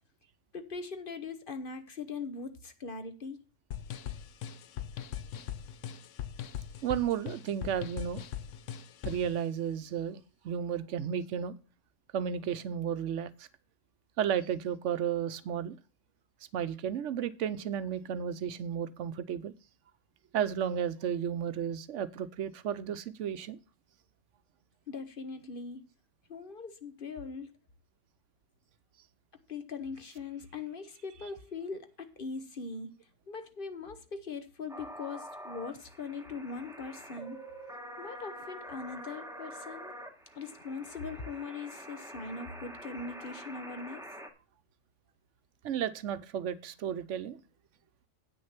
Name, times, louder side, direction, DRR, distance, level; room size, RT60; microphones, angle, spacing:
voice 1, 0.5-3.4 24.9-25.8 26.3-27.5 29.5-32.9 33.3-37.4 38.0-40.0 40.4-44.0, left 4 dB, 50° left, 1.1 m, -41 dB
sound 1, 3.7-9.3, left 10 dB, 80° left, 1.0 m, -40 dB
voice 2, 6.8-8.2 9.0-10.2 10.4-11.5 12.1-13.3 14.2-15.8 16.5-19.5 20.3-23.6 45.6-47.4, right 8 dB, 75° right, 1.0 m, -33 dB
sound 2, 34.7-44.3, right 1 dB, 5° right, 1.1 m, -46 dB
8.7 x 6.4 x 5.8 m
omnidirectional pair, 1.3 m